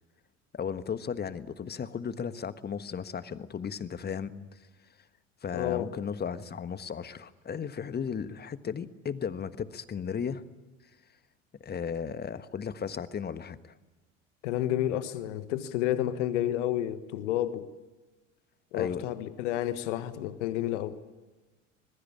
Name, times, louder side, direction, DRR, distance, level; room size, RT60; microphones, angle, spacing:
voice 1, 0.5-4.7 5.4-10.4 11.6-13.7 18.7-19.1, left 7 dB, 25° left, 13 dB, 1.4 m, -35 dB
voice 2, 5.5-6.0 14.4-17.7 18.7-21.0, left 12 dB, 65° left, 12 dB, 1.6 m, -30 dB
25.5 x 21.5 x 8.7 m, 1.2 s
figure-of-eight pair, 70°, 38 cm